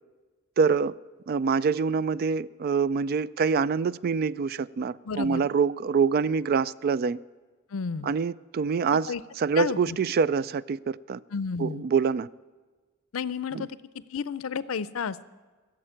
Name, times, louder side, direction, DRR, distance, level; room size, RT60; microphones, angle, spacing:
voice 1, 0.6-0.9 1.3-7.2 8.0-9.1 9.4-11.2 11.6-12.3 13.5-13.7, right 5 dB, 45° right, 0.3 m, -25 dB
voice 2, 5.0-5.4 7.7-8.1 8.9-9.2 9.6-10.0 11.3-11.8 13.1-15.2, left 5 dB, 85° left, 0.5 m, -32 dB
15.5 x 7.4 x 8.9 m
head